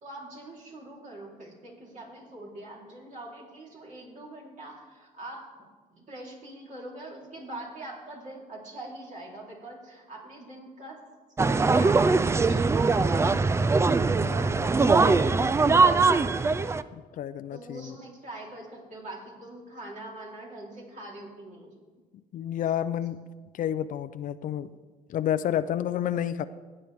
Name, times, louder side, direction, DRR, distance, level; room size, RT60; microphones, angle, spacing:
voice 1, 0.0-11.0 11.4-13.4 17.5-21.8, right 1 dB, 50° right, -2 dB, 3.6 m, -43 dB
sound 1, 11.4-16.8, right 4 dB, 15° right, 0.3 m, -22 dB
voice 2, 14.2-15.5 16.9-18.0 22.3-23.2 23.5-24.7 25.1-26.5, left 10 dB, 50° left, 14 dB, 0.5 m, -31 dB
16.0 x 9.7 x 3.5 m, 1.4 s
cardioid pair, 110°, 17 cm